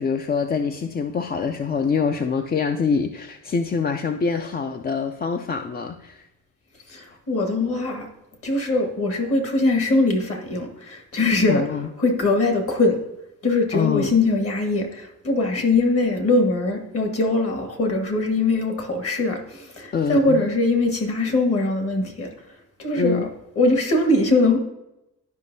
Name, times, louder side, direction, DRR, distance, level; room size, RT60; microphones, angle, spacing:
voice 1, 0.0-6.3 11.5-11.9 13.7-14.1 19.9-20.5 23.0-23.3, left 5 dB, 30° left, 6 dB, 0.5 m, -25 dB
voice 2, 6.9-8.1 8.4-11.6 12.0-13.0 13.4-22.3 22.8-23.3 23.5-24.6, left 2 dB, 50° left, 4 dB, 1.7 m, -21 dB
11.5 x 5.3 x 2.7 m, 0.90 s
cardioid pair, 90°, 30 cm